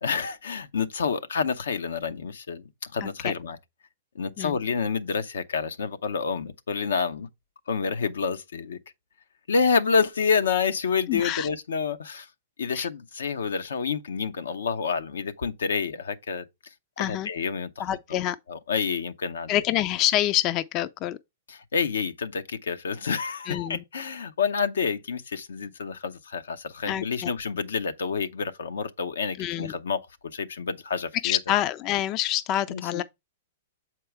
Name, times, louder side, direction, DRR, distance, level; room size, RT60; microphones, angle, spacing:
voice 1, 0.0-3.6 4.1-7.3 7.7-8.8 9.5-12.3 12.6-16.5 17.0-17.7 18.1-19.5 21.5-30.0 30.3-31.4 32.7-33.0, left 5 dB, 80° left, 0.7 m, -28 dB
voice 2, 3.0-3.3 4.4-4.6 11.1-11.5 12.7-12.9 17.0-17.3 17.8-18.4 19.5-21.2 23.5-23.8 26.9-27.3 29.4-29.7 31.2-33.0, left 13 dB, 35° left, 0.4 m, -27 dB
7.1 x 4.5 x 3.4 m
hypercardioid pair, 125°, 0 cm